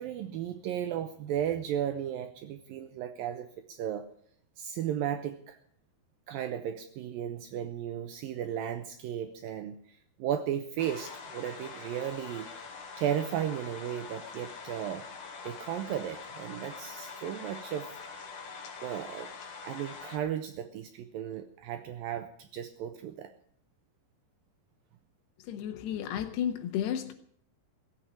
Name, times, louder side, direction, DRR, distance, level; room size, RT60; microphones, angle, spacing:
voice 1, 0.0-4.1 4.6-5.6 6.3-12.5 13.0-15.0 15.4-17.9 18.8-19.3 19.6-23.3, right 10 dB, 75° right, 8 dB, 2.3 m, -35 dB
sound 1, 10.8-20.2, left 5 dB, 60° left, 3.4 m, -44 dB
voice 2, 25.4-27.1, left 9 dB, 85° left, 5 dB, 3.2 m, -32 dB
16.5 x 8.0 x 10.0 m, 0.64 s
omnidirectional pair, 4.6 m